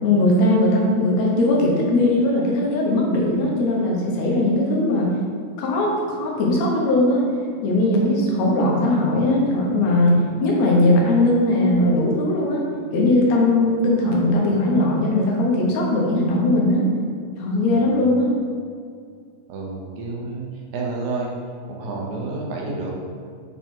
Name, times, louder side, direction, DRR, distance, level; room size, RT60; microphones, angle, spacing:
voice 1, 0.0-5.1 5.6-7.2 7.6-12.6 12.9-16.8 17.4-18.3, left 1 dB, 70° left, -2 dB, 2.1 m, -19 dB
voice 2, 17.7-18.0 19.5-20.5 20.7-21.3 21.7-22.9, right 3 dB, 75° right, -2 dB, 2.2 m, -29 dB
6.0 x 4.5 x 3.7 m, 2.2 s
omnidirectional pair, 3.4 m